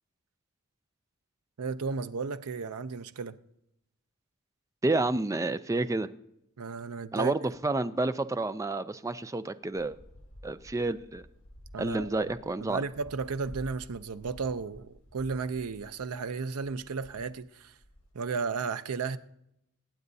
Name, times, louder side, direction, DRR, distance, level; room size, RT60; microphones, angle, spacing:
voice 1, 1.6-3.4 6.6-7.3 11.7-12.1 12.6-17.7 18.1-19.2, right 5 dB, 80° right, 0.6 m, -34 dB
voice 2, 4.8-6.1 7.1-10.0 10.4-11.2 11.8-12.8, right 2 dB, 15° right, 0.4 m, -29 dB
sound 1, 9.7-18.1, equal, 65° left, 2.0 m, -52 dB
23.5 x 8.6 x 2.7 m
head